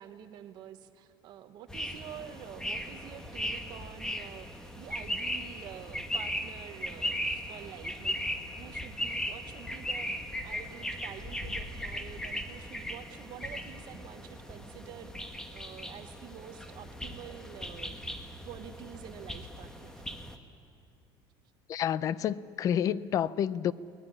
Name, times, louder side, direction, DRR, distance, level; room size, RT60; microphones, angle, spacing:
voice 1, 0.0-8.3 8.6-18.2 18.4-20.0, right 10 dB, 45° right, 1.1 m, -48 dB
sound 1, 1.7-20.4, equal, 5° left, 1.3 m, -38 dB
voice 2, 21.7-23.7, left 9 dB, 35° left, 0.5 m, -29 dB
23.0 x 19.5 x 9.8 m
cardioid pair, 170°, 10 cm